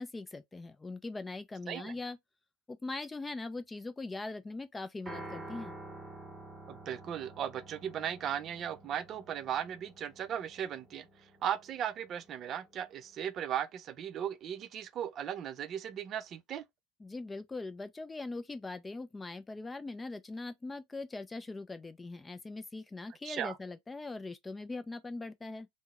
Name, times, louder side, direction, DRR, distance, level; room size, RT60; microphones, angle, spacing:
voice 1, 0.0-2.2 2.7-5.7 17.0-25.7, left 3 dB, 15° left, 0.4 m, -41 dB
Piano, 5.1-13.3, right 2 dB, 10° right, 1.9 m, -50 dB
voice 2, 6.7-11.1 11.4-16.6 23.2-23.6, right 9 dB, 40° right, 0.5 m, -37 dB
3.6 x 2.0 x 2.9 m
hypercardioid pair, 85°, 0 cm